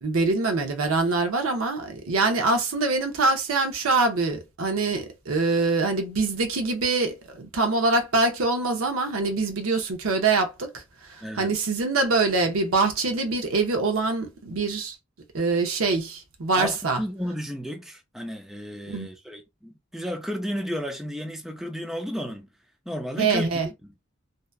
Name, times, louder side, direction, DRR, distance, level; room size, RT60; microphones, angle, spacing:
voice 1, 0.0-10.8 11.1-15.0 15.3-17.0 18.9-19.1 23.2-23.7, right 3 dB, 75° right, 0.7 m, -24 dB
voice 2, 11.2-11.5 16.6-22.5 22.9-23.9, equal, ahead, 0.4 m, -33 dB
2.7 x 2.2 x 2.3 m
head